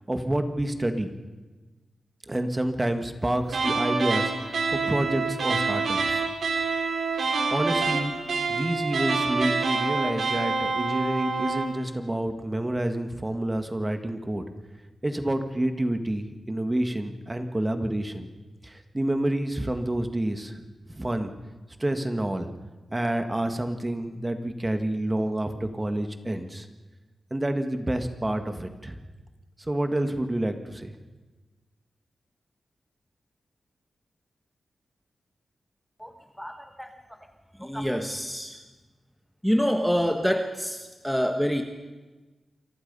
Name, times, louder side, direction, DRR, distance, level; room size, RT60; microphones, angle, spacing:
voice 1, 0.1-1.1 2.3-6.2 7.5-8.1 8.5-14.4 15.0-18.3 18.6-20.5 20.9-21.3 21.8-22.5 22.9-26.6 27.3-28.9 29.7-30.9, right 1 dB, 15° right, 7 dB, 1.7 m, -28 dB
sound 1, 3.5-11.8, right 4 dB, 70° right, 3.5 m, -27 dB
voice 2, 36.4-36.9 37.6-38.6 39.4-41.6, equal, ahead, 5 dB, 1.4 m, -26 dB
29.0 x 24.0 x 5.5 m, 1.2 s
wide cardioid pair, 145°, 0 cm